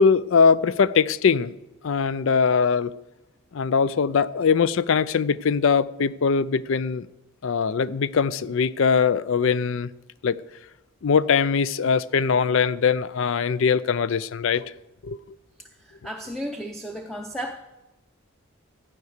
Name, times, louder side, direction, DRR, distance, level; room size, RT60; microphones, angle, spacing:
voice 1, 0.0-1.5 1.8-2.9 3.5-7.1 7.4-9.9 10.2-10.4 11.0-14.7 15.0-15.2, left 5 dB, 60° left, 0.4 m, -21 dB
voice 2, 15.8-17.6, equal, ahead, 0.6 m, -34 dB
13.5 x 9.4 x 6.6 m
head